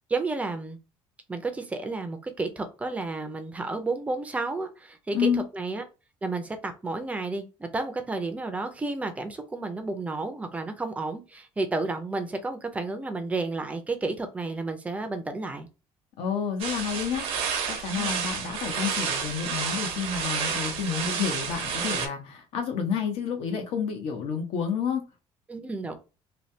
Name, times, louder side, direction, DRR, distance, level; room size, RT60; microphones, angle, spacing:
voice 1, 0.1-0.8 1.3-5.8 6.2-15.7 18.0-18.1 25.5-25.9, right 3 dB, 15° right, 0.5 m, -31 dB
voice 2, 5.1-5.4 16.2-25.0, left 7 dB, 75° left, 1.0 m, -30 dB
sound 1, 16.6-22.1, right 6 dB, 75° right, 0.7 m, -30 dB
3.2 x 2.2 x 2.7 m
cardioid pair, 150°, 10 cm